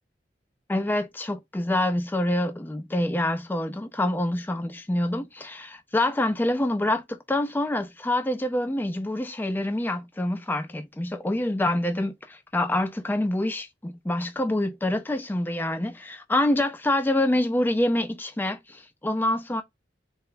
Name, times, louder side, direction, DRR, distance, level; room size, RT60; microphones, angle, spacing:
voice 1, 0.7-19.6, left 1 dB, 10° left, 0.4 m, -26 dB
4.0 x 2.2 x 3.8 m
head